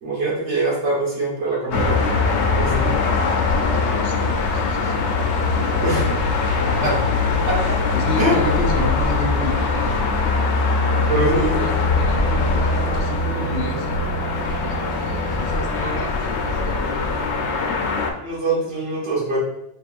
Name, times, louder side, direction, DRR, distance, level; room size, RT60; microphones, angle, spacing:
voice 1, 0.0-2.0 2.5-2.9 5.8-6.1 6.8-6.9 7.5-7.6 8.2-8.3 11.0-11.7 18.2-19.4, right 2 dB, 90° right, -6 dB, 1.7 m, -23 dB
sound 1, 1.7-18.1, left 3 dB, 85° left, 0.9 m, -21 dB
voice 2, 3.7-5.1 5.5-6.1 6.8-7.0 7.3-9.9 11.1-14.0 14.5-16.9, left 2 dB, 60° left, 1 dB, 0.6 m, -31 dB
Wind instrument woodwind instrument, 10.7-15.9, right 3 dB, 45° right, 0.8 m, -35 dB
4.2 x 3.5 x 2.5 m, 0.86 s
omnidirectional pair, 1.1 m